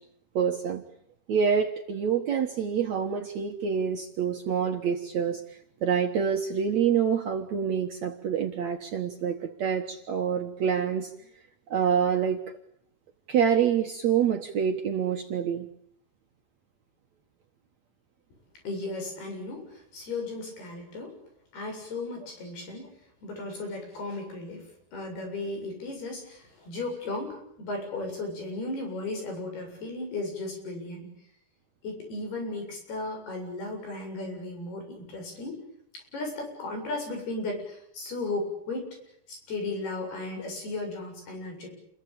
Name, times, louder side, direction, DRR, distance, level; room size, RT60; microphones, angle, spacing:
voice 1, 0.4-0.8 1.3-5.4 5.8-11.1 11.7-12.4 13.3-15.7, right 7 dB, 60° right, 5 dB, 2.0 m, -26 dB
voice 2, 18.6-21.2 21.5-22.9 23.2-24.7 24.9-31.1 31.8-35.6 35.9-38.9 39.3-41.7, left 2 dB, 70° left, 4 dB, 9.5 m, -35 dB
29.0 x 22.5 x 8.8 m, 0.72 s
omnidirectional pair, 4.6 m